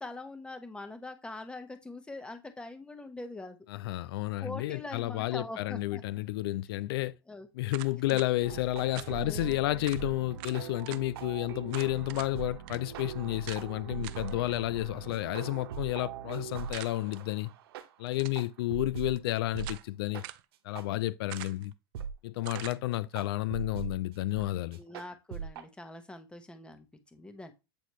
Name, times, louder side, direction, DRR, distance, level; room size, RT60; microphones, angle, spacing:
voice 1, 0.0-3.6 4.4-6.0 7.3-7.5 9.1-9.6 24.8-27.5, left 2 dB, 10° left, 1.1 m, -43 dB
voice 2, 3.7-7.1 7.5-17.5 18.0-20.2 20.6-21.7 22.2-24.8, left 17 dB, 75° left, 0.4 m, -31 dB
sound 1, 7.7-8.3 8.9-9.1 9.5-9.6 9.8-10.0 10.4-11.0 11.7-12.3 12.7-12.8 13.5-13.6 14.0-14.3 16.7-17.2 18.1-18.5 19.2-19.9 20.2-20.5 21.3-21.7 22.4-22.8, right 17 dB, 60° right, 0.5 m, -44 dB
sound 2, 8.4-19.1 19.5-19.7 20.1-20.3 20.7-20.9 21.4-21.5 21.9-22.1 22.5-22.7 23.1-23.9 24.4-24.5 24.7-25.7, right 8 dB, 80° right, 0.9 m, -41 dB
8.3 x 4.1 x 3.1 m
supercardioid pair, 120°, 13 cm